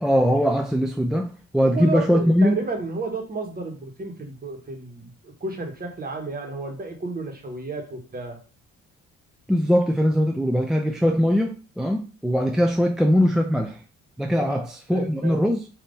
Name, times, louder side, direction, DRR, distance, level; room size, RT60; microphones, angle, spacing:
voice 1, 0.0-2.6 9.5-13.8 14.2-15.6, equal, ahead, 0.4 m, -21 dB
voice 2, 1.7-8.4 14.4-14.6 14.9-15.4, right 3 dB, 30° right, 1.3 m, -32 dB
3.6 x 2.7 x 3.9 m
cardioid pair, 90°, 30 cm